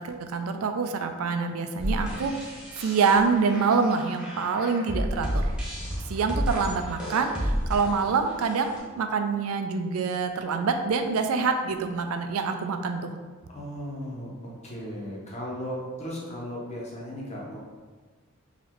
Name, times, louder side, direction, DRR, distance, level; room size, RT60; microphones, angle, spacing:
voice 1, 0.0-5.4 6.1-13.1, right 5 dB, 75° right, 7 dB, 0.4 m, -26 dB
sound 1, 1.8-8.8, equal, 5° right, 0.8 m, -31 dB
voice 2, 13.5-17.6, equal, 30° left, -4 dB, 0.9 m, -36 dB
3.9 x 3.1 x 3.0 m, 1.4 s
head